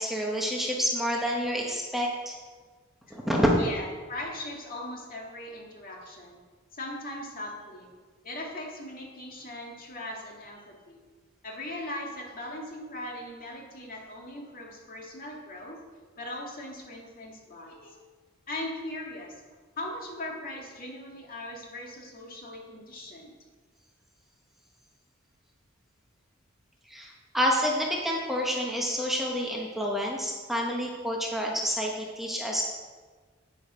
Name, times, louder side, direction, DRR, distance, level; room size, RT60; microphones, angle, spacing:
voice 1, 0.0-2.4 3.1-3.6 26.9-32.6, equal, ahead, -2 dB, 1.2 m, -28 dB
voice 2, 3.6-6.4 6.7-7.9 8.2-11.0 11.4-15.8 16.2-18.0 18.5-19.4 19.8-23.3, left 1 dB, 45° left, -1 dB, 2.2 m, -39 dB
9.8 x 8.7 x 5.1 m, 1.4 s
head